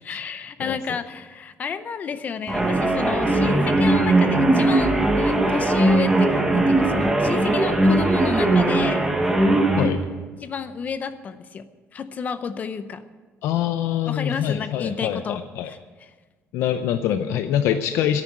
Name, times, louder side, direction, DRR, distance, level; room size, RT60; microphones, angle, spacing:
voice 1, 0.0-9.0 10.4-13.0 14.1-15.8, left 6 dB, 35° left, 12 dB, 0.6 m, -31 dB
voice 2, 0.6-1.0 9.8-10.0 13.4-15.7 16.5-18.2, left 10 dB, 75° left, 9 dB, 0.6 m, -24 dB
sound 1, 2.5-9.9, right 2 dB, 10° right, 1.4 m, -19 dB
10.5 x 9.0 x 9.8 m, 1.4 s
cardioid pair, 170°, 5 cm